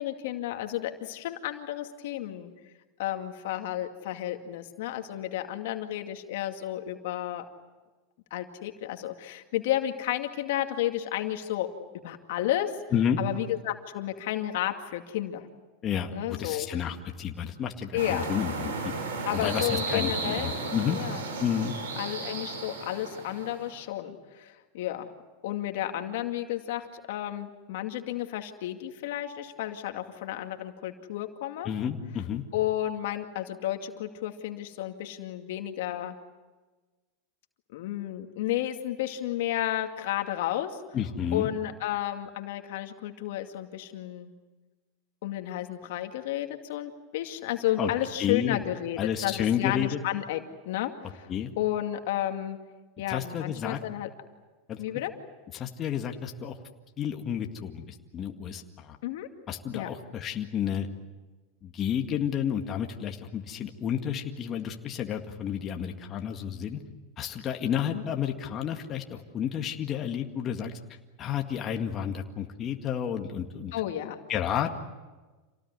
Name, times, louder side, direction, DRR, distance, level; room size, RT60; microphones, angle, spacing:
voice 1, 0.0-2.5 3.0-7.5 8.3-11.7 12.0-12.7 13.2-15.4 16.1-16.7 17.9-18.3 19.3-21.2 22.0-25.1 25.4-31.7 32.5-36.1 37.7-40.8 41.3-44.3 45.2-51.3 51.6-52.6 53.0-54.1 54.8-55.1 59.0-59.3 59.7-59.9 67.9-68.0 73.7-74.2, left 13 dB, 70° left, 5 dB, 2.3 m, -32 dB
voice 2, 15.8-18.7 19.3-21.0 21.4-21.7 31.6-32.4 40.9-41.5 47.8-47.9 48.2-48.6 49.0-50.0 51.3-51.5 53.1-53.8 54.7-54.8 55.5-56.6 57.0-59.0 59.5-60.9 61.6-66.8 67.2-70.7 71.2-73.7 74.3-74.7, left 9 dB, 35° left, 3 dB, 1.9 m, -31 dB
sound 1, 18.0-23.8, right 3 dB, 85° right, 5.4 m, -34 dB
27.5 x 18.5 x 9.6 m, 1.3 s
supercardioid pair, 125°, 0 cm